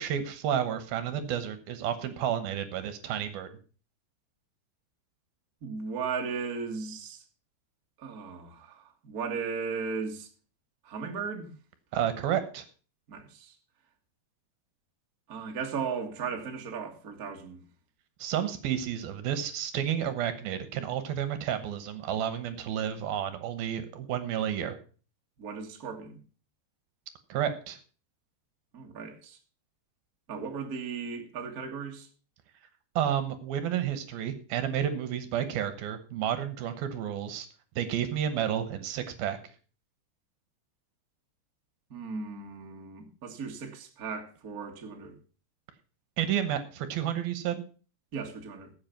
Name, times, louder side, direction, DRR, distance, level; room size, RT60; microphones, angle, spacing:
voice 1, 0.0-3.6 11.9-12.6 18.2-24.8 27.3-27.8 33.0-37.5 37.8-39.4 46.2-47.6, right 9 dB, 70° right, 2.7 m, -31 dB
voice 2, 5.6-7.2 8.0-10.3 10.8-11.5 13.1-13.5 15.3-17.6 25.4-26.2 28.7-29.4 30.3-32.1 41.9-45.1 48.1-48.7, right 5 dB, 45° right, 1.1 m, -36 dB
14.5 x 7.9 x 5.8 m
omnidirectional pair, 4.9 m